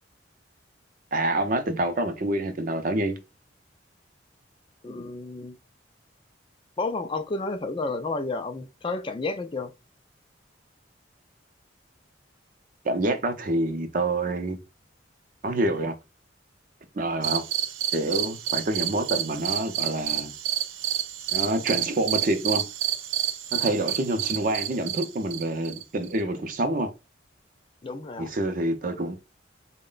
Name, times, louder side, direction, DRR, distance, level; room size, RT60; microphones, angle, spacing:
voice 1, 1.1-3.2 12.8-14.6 15.4-15.9 16.9-17.4 17.9-20.3 21.3-22.7 23.5-26.9 28.2-29.2, right 1 dB, 45° right, 0.6 m, -27 dB
voice 2, 4.8-5.6 6.8-9.7 27.8-28.3, left 3 dB, 25° left, 0.3 m, -31 dB
sound 1, 17.2-26.2, right 11 dB, 90° right, 0.5 m, -29 dB
4.0 x 2.1 x 3.8 m
head